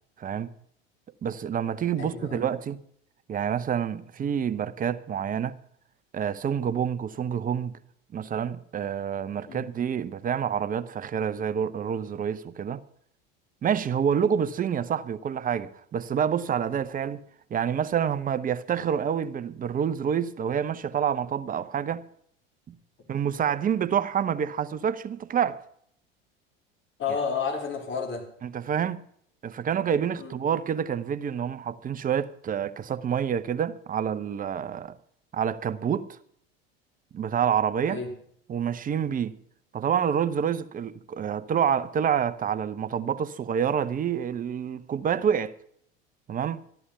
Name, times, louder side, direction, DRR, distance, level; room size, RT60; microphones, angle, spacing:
voice 1, 0.2-0.5 1.2-2.8 3.3-5.5 6.1-7.7 8.1-12.8 13.6-17.2 17.5-22.0 22.7-22.8 23.1-25.6 28.4-29.1 29.4-34.9 35.3-36.1 37.1-38.0 38.5-39.4 39.7-45.5 46.3-46.6, right 8 dB, 30° right, 0.8 m, -27 dB
voice 2, 2.0-2.5 9.5-9.7 27.0-28.3 30.1-30.3 37.9-38.1, left 5 dB, 40° left, 3.5 m, -31 dB
13.0 x 11.0 x 5.7 m
hypercardioid pair, 85°, 30 cm